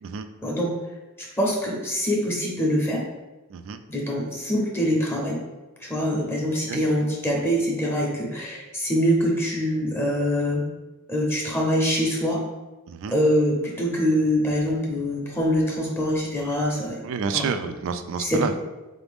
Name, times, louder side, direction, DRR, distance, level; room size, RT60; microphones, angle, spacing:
voice 1, 0.4-0.7 1.2-3.1 3.9-5.4 5.8-10.6 11.1-12.5 13.1-17.0 17.3-17.5 18.2-18.6, equal, 10° left, -2 dB, 0.6 m, -24 dB
voice 2, 17.0-18.5, right 6 dB, 65° right, 9 dB, 0.3 m, -29 dB
3.9 x 2.6 x 3.4 m, 1.1 s
head